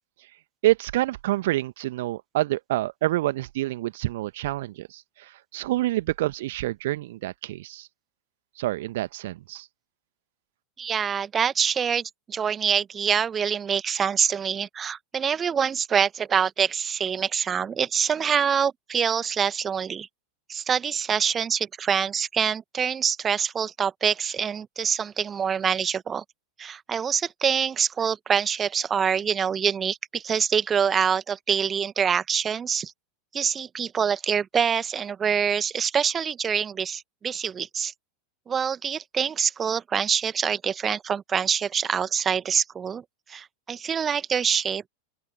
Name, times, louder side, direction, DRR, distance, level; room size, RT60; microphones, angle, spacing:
voice 1, 0.6-5.0 5.5-7.9 8.6-9.7, right 16 dB, 55° right, 1.7 m, -27 dB
voice 2, 10.8-20.1 20.5-26.2 26.6-32.9 33.3-37.9 38.5-43.0 43.3-44.9, right 7 dB, 20° right, 1.4 m, -25 dB
open air
figure-of-eight pair, 90°, 0 cm